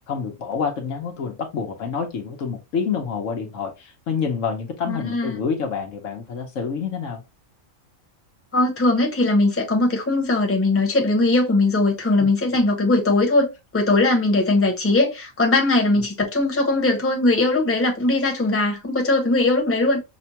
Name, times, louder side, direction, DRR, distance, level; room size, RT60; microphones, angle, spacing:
voice 1, 0.1-7.2, left 6 dB, 75° left, 1.2 m, -27 dB
voice 2, 4.9-5.4 8.5-20.0, left 2 dB, 10° left, 0.9 m, -20 dB
5.9 x 2.3 x 2.8 m
omnidirectional pair, 1.4 m